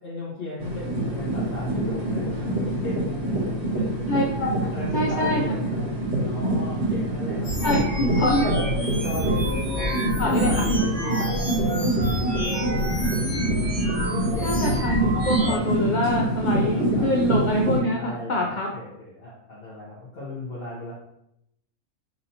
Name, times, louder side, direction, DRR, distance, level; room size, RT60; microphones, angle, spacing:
voice 1, 0.0-4.1 4.4-5.9 6.2-7.9 9.0-12.5 14.3-14.8 15.4-16.0 16.7-17.1 17.9-20.9, left 2 dB, 45° left, -8 dB, 1.1 m, -36 dB
sound 1, 0.6-17.8, right 1 dB, 50° right, 1.5 m, -26 dB
voice 2, 4.1-5.5 7.6-8.5 9.9-10.7 14.4-18.7, left 1 dB, 75° left, -1 dB, 0.4 m, -25 dB
sound 2, 7.4-15.6, equal, 20° right, 1.2 m, -28 dB
5.4 x 2.7 x 2.8 m, 0.79 s
omnidirectional pair, 1.5 m